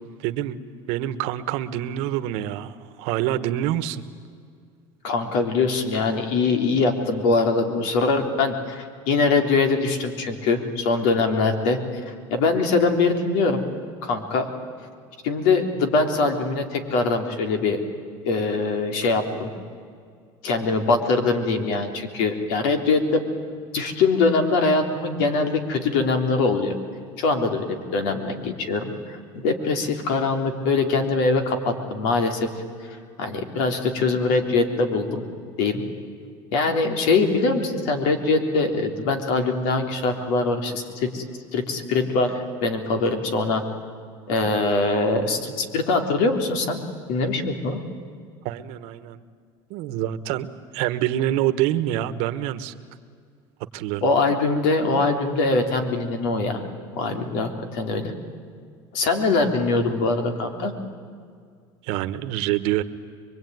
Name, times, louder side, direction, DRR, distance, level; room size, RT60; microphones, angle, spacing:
voice 1, 0.2-0.6 0.9-4.0 48.4-49.2 49.7-50.5 50.7-52.7 53.7-54.0 61.8-62.8, right 13 dB, 70° right, 12 dB, 1.3 m, -26 dB
voice 2, 5.0-11.8 12.1-13.6 14.0-14.5 15.2-17.8 18.2-19.5 20.4-23.2 23.7-26.8 27.2-32.5 32.9-35.2 35.6-35.8 36.5-41.2 41.5-43.6 44.3-46.8 47.1-47.8 54.0-56.6 56.9-58.1 58.9-60.7, left 3 dB, 75° left, 5 dB, 3.5 m, -23 dB
24.5 x 23.0 x 9.4 m, 2.2 s
cardioid pair, 130°, 11 cm